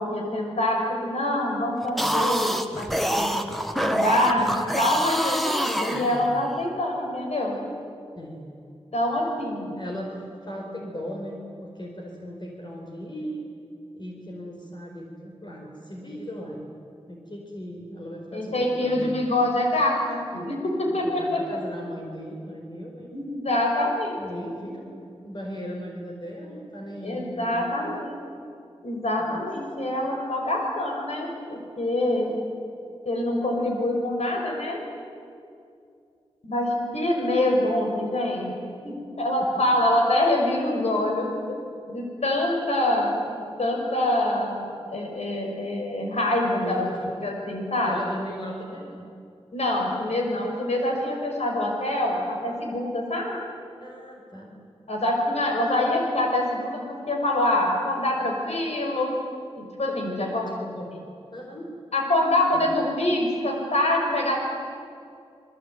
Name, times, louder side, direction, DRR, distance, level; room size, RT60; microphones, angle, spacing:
voice 1, 0.0-3.4 3.8-7.6 8.9-9.7 18.3-21.6 23.1-24.1 24.4-24.5 27.0-28.2 28.8-32.4 33.0-34.8 36.4-38.5 38.8-41.6 41.9-48.0 49.5-53.3 54.9-59.2 59.6-60.5 61.9-64.4, left 1 dB, 80° left, 0 dB, 6.0 m, -25 dB
sound 1, 1.8-6.6, equal, ahead, 1.7 m, -26 dB
voice 2, 9.7-13.5 13.9-16.6 17.1-19.1 20.9-23.1 24.2-24.9 25.2-28.0 29.2-29.5 39.4-39.8 46.6-47.0 47.8-49.0 53.8-54.5 59.9-60.9 61.3-61.7 62.5-62.7, equal, 45° left, -1 dB, 4.8 m, -37 dB
28.0 x 21.5 x 9.5 m, 2.4 s
wide cardioid pair, 95°, 11 cm